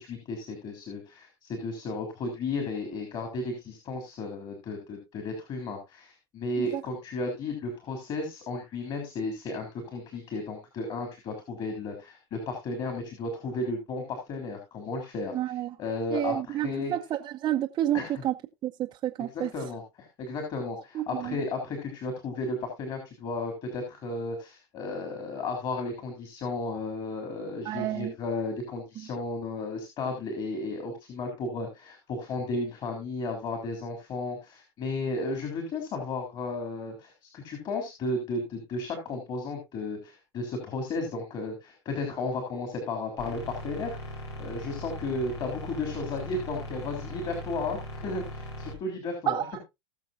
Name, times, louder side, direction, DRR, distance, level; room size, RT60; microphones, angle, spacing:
voice 1, 0.0-15.5 15.8-16.9 17.9-18.2 19.3-49.5, left 3 dB, 35° left, 4 dB, 3.4 m, -34 dB
voice 2, 15.3-15.7 16.1-18.3 18.6-19.5 20.9-21.4 27.6-28.1 49.3-49.6, right 13 dB, 30° right, 3 dB, 0.7 m, -30 dB
sound 1, 43.2-48.7, equal, 85° left, 3.9 m, -39 dB
19.5 x 6.7 x 2.6 m, 0.22 s
hypercardioid pair, 120°, 14 cm